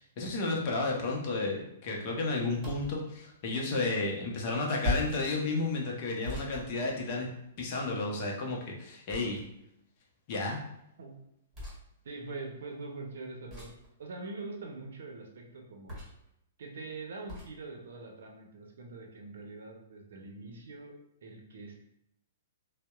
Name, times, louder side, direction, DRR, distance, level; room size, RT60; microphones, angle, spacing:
voice 1, 0.0-7.3 7.6-9.4 10.3-10.6, left 3 dB, 45° left, -1 dB, 0.6 m, -32 dB
sound 1, 2.6-3.0 4.8-5.2 6.2-7.4 9.1-9.7 11.5-11.8 13.5-13.9 15.9-16.3 17.3-17.5, left 1 dB, 20° right, 1.2 m, -37 dB
voice 2, 12.0-13.7 14.0-16.0 16.6-21.7, right 3 dB, 70° right, 1 dB, 0.5 m, -43 dB
2.7 x 2.0 x 2.3 m, 0.79 s
hypercardioid pair, 125°, 0 cm